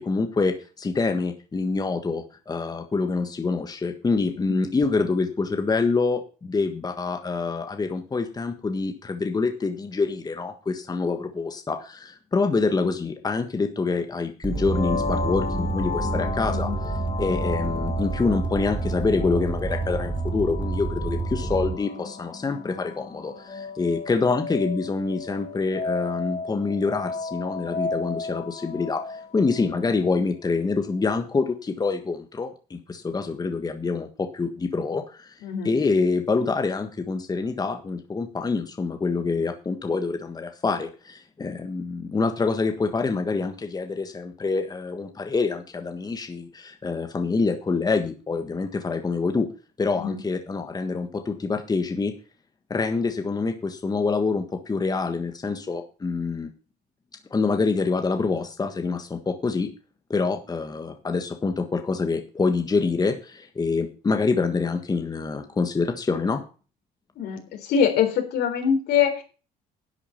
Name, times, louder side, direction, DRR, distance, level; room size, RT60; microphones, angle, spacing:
voice 1, 0.0-35.3 35.6-49.5 49.8-52.1 52.7-56.5 57.3-59.7 60.1-66.4, left 4 dB, 25° left, 6 dB, 1.5 m, -26 dB
sound 1, 14.4-21.7, right 3 dB, 10° right, 1.8 m, -29 dB
sound 2, 14.5-30.2, left 4 dB, 40° left, 2.5 m, -34 dB
voice 2, 35.4-35.7 50.0-50.2 67.2-67.4 67.7-69.2, left 7 dB, 75° left, 5 dB, 3.9 m, -23 dB
11.0 x 8.4 x 5.8 m, 0.36 s
cardioid pair, 110°, 17 cm